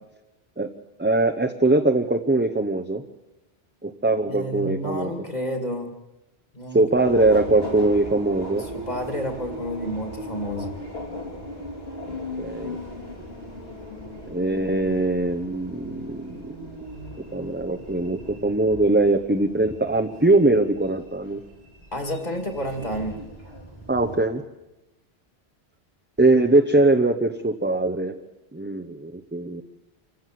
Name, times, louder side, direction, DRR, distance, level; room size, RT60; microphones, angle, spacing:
voice 1, 1.0-3.0 3.8-5.1 6.7-8.6 12.4-12.8 14.3-16.5 17.3-21.4 23.9-24.4 26.2-28.2 28.5-29.6, right 2 dB, 10° right, 4 dB, 0.8 m, -21 dB
voice 2, 4.3-5.9 6.5-7.2 8.7-10.8 21.9-23.2, equal, 40° left, 5 dB, 2.6 m, -30 dB
Subway metro underground, 7.0-24.2, left 1 dB, 70° left, 3.7 m, -38 dB
26.5 x 15.5 x 7.7 m, 1.0 s
omnidirectional pair, 1.1 m